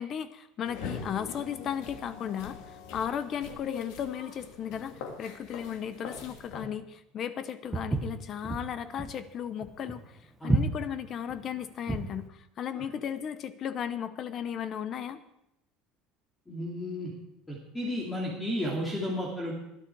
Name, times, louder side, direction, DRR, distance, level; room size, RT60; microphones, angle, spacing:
voice 1, 0.0-10.2 10.4-15.2, left 8 dB, 35° left, 13 dB, 0.8 m, -35 dB
sound 1, 0.7-6.7, left 5 dB, 70° left, 2.6 m, -43 dB
Walk footsteps, 7.7-12.2, right 3 dB, 10° right, 1.2 m, -31 dB
voice 2, 16.5-17.1 17.5-19.5, left 1 dB, 10° left, -2 dB, 2.6 m, -33 dB
20.5 x 11.0 x 4.7 m, 0.84 s
cardioid pair, 165°, 0 cm